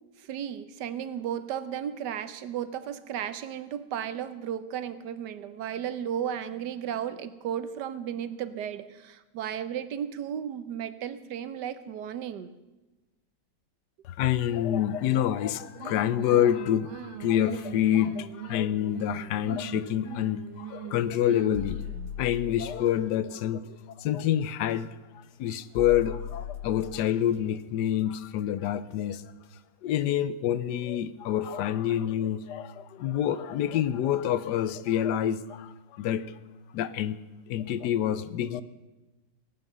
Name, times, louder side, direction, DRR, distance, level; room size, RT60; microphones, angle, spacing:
voice 1, 0.2-12.5, right 9 dB, 70° right, 1.4 m, -34 dB
voice 2, 14.0-21.8 22.2-25.0 25.4-29.2 29.8-36.3 36.7-37.2 37.5-38.6, left 11 dB, 75° left, 1.2 m, -27 dB
sound 1, 15.7-22.2, right 12 dB, 85° right, 1.4 m, -41 dB
sound 2, 21.5-22.8 24.7-24.8 25.7-27.1 28.9-29.0 29.5-29.6, left 10 dB, 55° left, 0.9 m, -38 dB
17.5 x 9.2 x 6.7 m
omnidirectional pair, 1.9 m